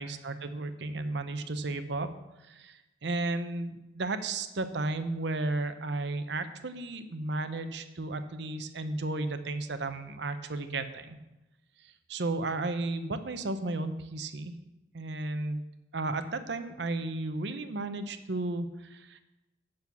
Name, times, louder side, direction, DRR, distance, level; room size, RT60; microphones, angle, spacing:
voice 1, 0.0-2.1 2.4-11.2 11.8-14.5 14.9-15.7 15.9-19.2, right 2 dB, 60° right, 9 dB, 0.7 m, -34 dB
8.2 x 6.4 x 7.1 m, 0.99 s
head